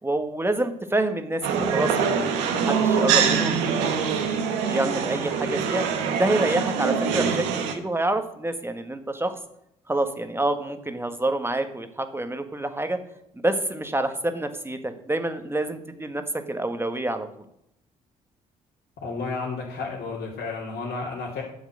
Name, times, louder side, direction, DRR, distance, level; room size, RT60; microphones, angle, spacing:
voice 1, 0.0-4.1 4.6-5.9 6.1-9.3 9.9-13.0 13.3-17.3, right 2 dB, 10° right, 7 dB, 1.6 m, -27 dB
sound 1, 1.4-7.8, right 6 dB, 75° right, 1.3 m, -24 dB
voice 2, 19.0-21.4, left 4 dB, 60° left, -6 dB, 2.9 m, -32 dB
11.0 x 7.3 x 6.4 m, 0.77 s
hypercardioid pair, 45°, 19 cm